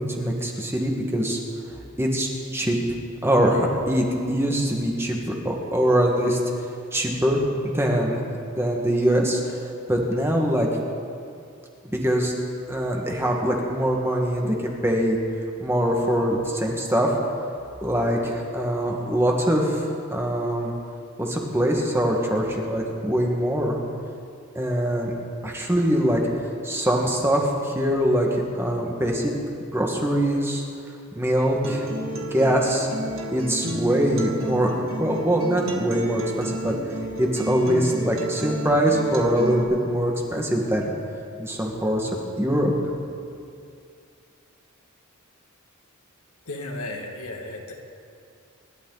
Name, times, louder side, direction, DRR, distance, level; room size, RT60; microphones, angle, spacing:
voice 1, 0.0-1.4 2.0-2.8 3.2-6.4 6.9-7.4 7.7-8.2 8.5-9.6 9.9-10.7 11.8-12.3 12.7-15.2 15.6-17.1 17.8-20.7 21.2-23.8 24.6-25.1 25.4-26.2 26.6-29.3 29.7-30.6 31.2-31.9 32.3-32.9 33.3-36.8 37.2-40.9 41.4-42.1 42.4-42.7, equal, 10° right, -1 dB, 1.8 m, -23 dB
Acoustic guitar, 31.6-39.6, right 1 dB, 65° right, 2.2 m, -31 dB
voice 2, 46.5-47.7, left 2 dB, 85° left, 0 dB, 2.2 m, -34 dB
26.5 x 12.0 x 4.1 m, 2.5 s
head